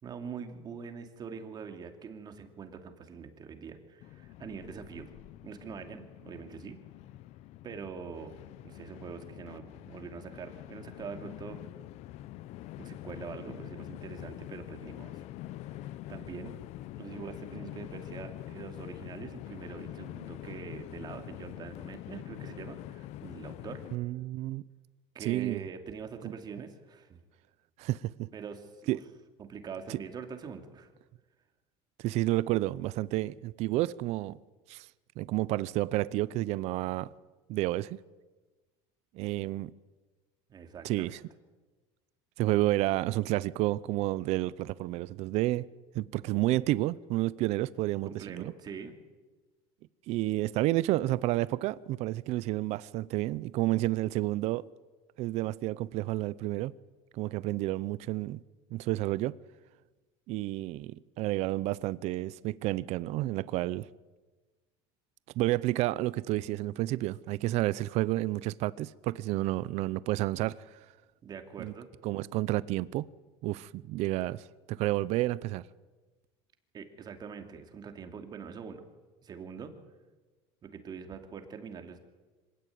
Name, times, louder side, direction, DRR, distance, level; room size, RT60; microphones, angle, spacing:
voice 1, 0.0-5.1 5.4-6.8 7.6-8.4 8.6-11.6 12.8-15.3 16.1-16.5 17.0-23.8 25.1-27.2 28.3-29.0 29.4-30.9 40.5-41.2 48.1-48.9 71.2-71.9 76.7-78.8 79.2-79.7 80.6-82.0, right 6 dB, 30° right, 2.7 m, -44 dB
Train, 4.0-24.0, left 14 dB, 55° left, 0.7 m, -45 dB
voice 2, 23.9-24.6 25.2-25.6 27.8-28.3 28.9-29.0 29.9-30.0 32.0-34.4 34.7-34.9 35.2-37.1 37.5-38.0 39.1-39.7 40.8-41.2 42.4-45.7 45.9-48.5 50.1-54.6 55.2-56.7 57.1-58.4 58.7-59.3 60.3-63.9 65.4-70.8 71.6-71.7 72.0-73.1 73.4-75.6, right 17 dB, 55° right, 0.7 m, -30 dB
25.5 x 17.0 x 9.5 m
cardioid pair, 145°, 13 cm